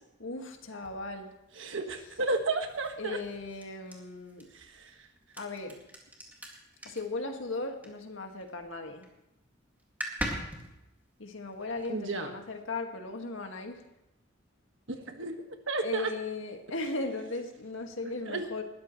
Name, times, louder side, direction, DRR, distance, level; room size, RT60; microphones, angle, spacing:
voice 1, 0.2-1.3 3.0-4.5 5.4-5.9 6.8-9.1 11.2-13.8 15.8-18.6, left 3 dB, 75° left, 4 dB, 1.9 m, -37 dB
sound 1, 0.8-8.5 8.8-9.2 9.5-9.6 9.8-12.2, equal, 10° right, 2.2 m, -43 dB
voice 2, 1.6-3.2 4.5-4.9 11.9-12.3 15.1-16.1 18.0-18.4, right 3 dB, 70° right, 5 dB, 1.6 m, -33 dB
20.0 x 13.5 x 3.2 m, 0.88 s
head